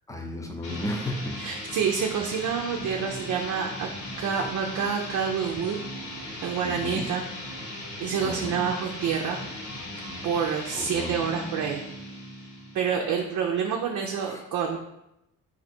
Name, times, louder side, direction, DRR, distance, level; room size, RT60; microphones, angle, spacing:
voice 1, 0.1-1.4 6.6-7.1 8.2-8.6 10.7-11.2 14.2-14.4, left 1 dB, 10° left, 1 dB, 0.7 m, -34 dB
sound 1, 0.6-13.1, left 1 dB, 70° left, 1.4 m, -38 dB
voice 2, 1.4-3.9 4.2-5.8 6.4-7.2 8.0-9.4 10.2-11.8 12.7-14.8, right 7 dB, 70° right, 1 dB, 0.6 m, -28 dB
3.9 x 2.7 x 4.3 m, 0.85 s
cardioid pair, 90°, 30 cm